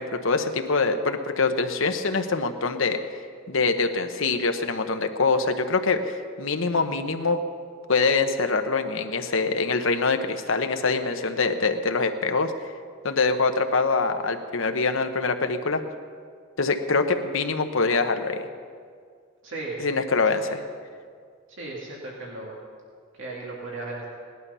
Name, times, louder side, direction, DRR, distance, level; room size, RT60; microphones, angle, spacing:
voice 1, 0.0-3.0 3.5-7.4 7.9-12.5 13.0-15.8 16.6-18.4 19.8-20.6, left 4 dB, 70° left, 7 dB, 1.0 m, -24 dB
voice 2, 19.4-19.8 21.6-22.5 23.2-24.0, right 2 dB, 65° right, -3 dB, 2.3 m, -35 dB
18.0 x 11.5 x 5.6 m, 2.1 s
head